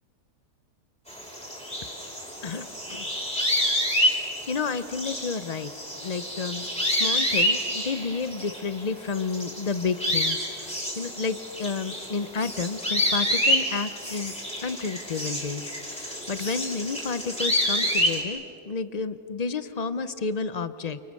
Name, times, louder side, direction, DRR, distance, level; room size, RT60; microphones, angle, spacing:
sound 1, 1.1-8.8 9.1-18.2, equal, 5° left, 4.9 m, -28 dB
voice 1, 2.4-3.1 4.5-5.7 6.0-14.3 14.6-21.0, left 5 dB, 70° left, 13 dB, 0.3 m, -31 dB
29.0 x 28.0 x 6.5 m, 3.0 s
omnidirectional pair, 1.8 m